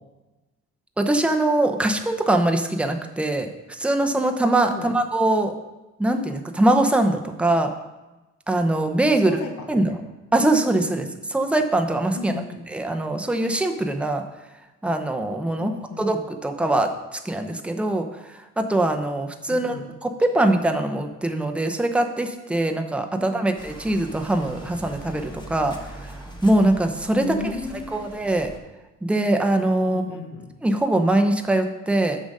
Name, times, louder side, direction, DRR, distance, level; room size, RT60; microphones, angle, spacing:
voice 1, 1.0-5.5 6.0-7.7 8.5-9.4 9.7-9.9 10.3-11.0 11.3-12.3 12.7-14.2 14.8-15.7 16.0-18.1 18.6-19.7 20.0-25.8 26.0-27.4 27.9-28.5 29.0-30.0 30.6-32.2, right 1 dB, 5° right, 5 dB, 0.7 m, -22 dB
voice 2, 9.2-10.0 10.9-11.1 12.1-12.6 15.6-16.1 19.5-19.8 23.1-23.5 27.2-28.1 29.8-30.5, left 4 dB, 75° left, 3 dB, 1.1 m, -35 dB
sound 1, 23.6-28.6, right 1 dB, 15° left, 1.3 m, -41 dB
7.2 x 5.1 x 5.4 m, 1.1 s
cardioid pair, 90°, 30 cm